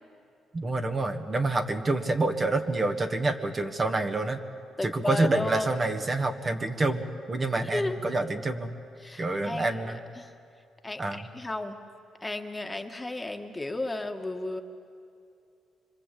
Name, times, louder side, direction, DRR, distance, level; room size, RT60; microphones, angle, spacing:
voice 1, 0.5-4.4 4.8-8.7 9.2-10.0 11.0-11.2, right 2 dB, 30° right, 5 dB, 1.7 m, -27 dB
voice 2, 4.8-5.7 7.7-8.0 9.0-10.3 10.8-11.8 12.2-14.6, left 2 dB, 15° left, 4 dB, 1.6 m, -33 dB
25.0 x 25.0 x 8.5 m, 2.5 s
cardioid pair, 90°, 0 cm